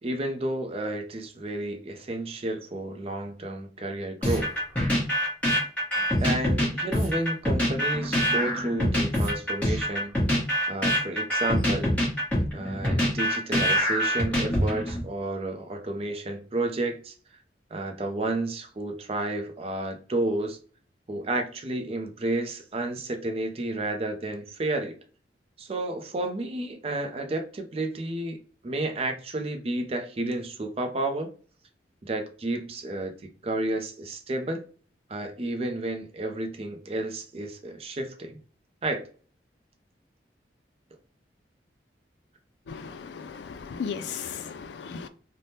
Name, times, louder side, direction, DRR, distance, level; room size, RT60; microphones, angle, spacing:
voice 1, 0.0-4.5 5.9-10.1 10.7-12.0 12.5-17.1 17.7-20.6 21.1-25.0 25.6-31.3 32.0-33.1 33.4-34.6 35.1-38.4 38.8-39.1, right 2 dB, 35° right, 0.4 m, -31 dB
sound 1, 4.2-15.0, equal, 10° left, 1.1 m, -25 dB
voice 2, 42.7-45.1, left 6 dB, 70° left, 0.3 m, -36 dB
3.3 x 2.1 x 2.7 m
head